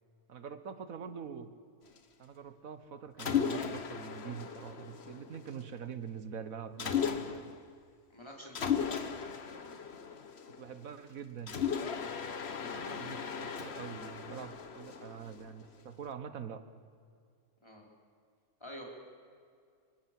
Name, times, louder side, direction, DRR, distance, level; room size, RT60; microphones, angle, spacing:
voice 1, 0.3-1.5 2.2-7.5 10.6-11.6 12.7-16.6, right 7 dB, 90° right, 11 dB, 1.6 m, -44 dB
Mechanisms, 3.2-5.6 6.8-7.7 8.5-10.9 11.5-15.6, left 7 dB, 55° left, 1.4 m, -36 dB
voice 2, 8.1-9.1 12.5-12.8 17.6-17.8 18.6-18.8, equal, 20° left, -1 dB, 4.7 m, -49 dB
25.0 x 24.0 x 7.7 m, 2.2 s
omnidirectional pair, 1.4 m